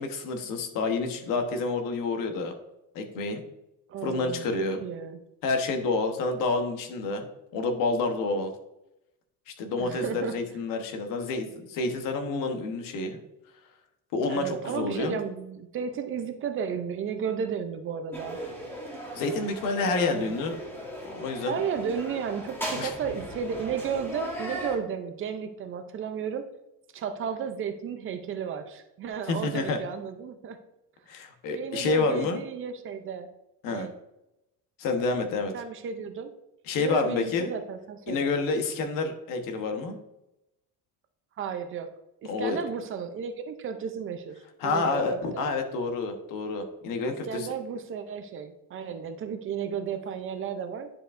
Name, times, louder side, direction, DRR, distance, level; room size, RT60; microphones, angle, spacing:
voice 1, 0.0-2.5 2.9-3.4 4.0-4.8 5.4-7.2 7.5-8.5 9.5-13.2 14.1-15.2 19.1-20.6 21.1-21.5 22.8-22.9 29.3-29.8 31.1-32.4 33.6-33.9 34.8-35.5 36.7-37.5 38.1-40.0 42.3-42.6 44.6-47.5, left 3 dB, 70° left, 5 dB, 1.1 m, -28 dB
voice 2, 3.9-4.5 4.8-5.2 9.8-10.4 14.3-18.4 19.9-20.3 21.5-26.5 26.9-30.6 31.5-33.3 33.7-33.9 35.5-36.3 36.8-38.3 41.4-41.9 42.2-45.5 47.3-50.9, right 7 dB, 35° right, 8 dB, 0.5 m, -33 dB
sound 1, 18.1-24.8, equal, 5° left, 1.2 m, -38 dB
10.0 x 4.8 x 2.5 m, 0.89 s
cardioid pair, 155°, 34 cm